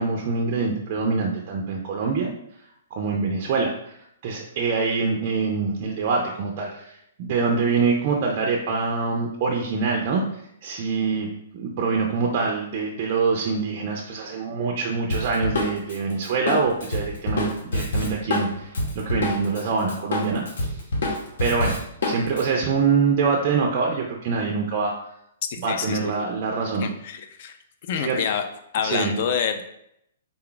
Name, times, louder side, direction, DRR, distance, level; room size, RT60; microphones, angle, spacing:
voice 1, 0.0-2.3 2.9-11.3 11.5-20.8 21.4-24.9 25.6-26.9 27.9-28.2 28.8-29.2, right 4 dB, 35° right, 0 dB, 0.4 m, -25 dB
Drum kit, 15.1-19.6 19.9-22.4, left 2 dB, 70° left, 0.9 m, -26 dB
voice 2, 25.5-26.1 26.8-27.6 27.9-28.5 28.7-29.6, left 7 dB, 40° left, 7 dB, 0.4 m, -27 dB
3.7 x 2.3 x 3.8 m, 0.76 s
hypercardioid pair, 165°, 0 cm